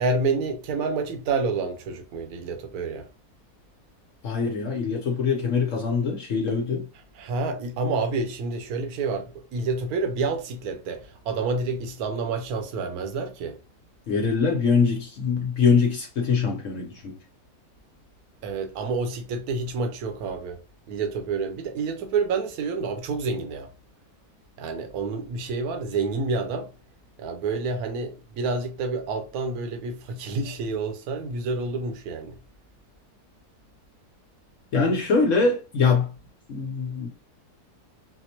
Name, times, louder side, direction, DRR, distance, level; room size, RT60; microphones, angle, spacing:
voice 1, 0.0-3.1 7.2-13.5 18.4-20.6 20.9-23.7 24.6-26.7 27.2-32.4, right 4 dB, 75° right, 1.2 m, -28 dB
voice 2, 4.2-6.8 14.1-17.2 34.7-36.1 36.5-37.1, left 5 dB, 60° left, 0.9 m, -23 dB
4.2 x 2.1 x 2.8 m
omnidirectional pair, 1.7 m